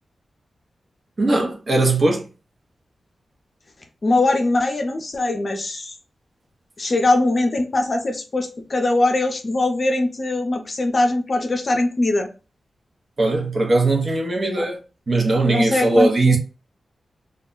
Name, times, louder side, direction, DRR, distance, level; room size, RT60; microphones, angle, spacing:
voice 1, 1.2-2.2 13.2-14.8 15.1-16.4, right 2 dB, 45° right, 0.7 m, -19 dB
voice 2, 4.0-5.9 6.8-12.3 14.5-14.7 15.5-16.4, left 2 dB, 45° left, 0.5 m, -21 dB
2.2 x 2.1 x 3.7 m
wide cardioid pair, 95°, 0 cm